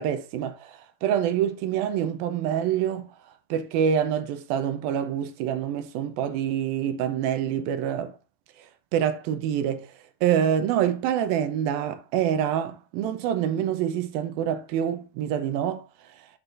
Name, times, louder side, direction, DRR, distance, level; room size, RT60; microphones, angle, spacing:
voice 1, 0.0-3.1 3.5-8.1 8.9-9.9 10.2-15.8, right 9 dB, 75° right, 2.4 m, -26 dB
9.0 x 6.4 x 2.5 m
omnidirectional pair, 4.7 m